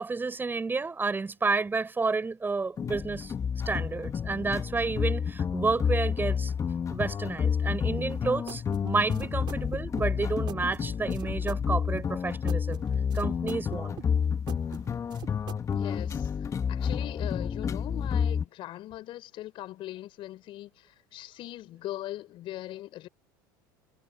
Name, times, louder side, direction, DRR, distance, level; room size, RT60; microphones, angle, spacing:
voice 1, 0.0-3.3 3.7-6.5 6.9-12.8 13.1-14.0, right 4 dB, 20° right, 5.9 m, -30 dB
sound 1, 2.8-18.5, left 7 dB, 30° left, 1.7 m, -30 dB
sound 2, 8.0-15.8, right 11 dB, 45° right, 3.5 m, -46 dB
voice 2, 15.8-23.1, left 15 dB, 50° left, 6.0 m, -41 dB
hypercardioid pair, 80°, 11 cm